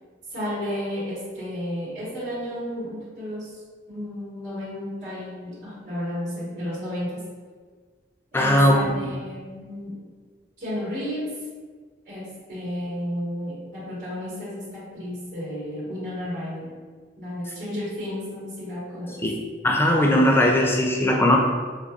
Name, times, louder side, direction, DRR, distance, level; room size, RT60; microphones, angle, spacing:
voice 1, 0.3-3.6 3.9-7.2 8.3-10.0 10.6-11.3 12.1-16.7 17.2-19.3, equal, 45° right, -10 dB, 1.4 m, -32 dB
voice 2, 8.3-8.8 19.2-19.3 19.6-21.4, left 1 dB, 10° left, -1 dB, 0.3 m, -18 dB
4.5 x 2.6 x 2.4 m, 1.5 s
head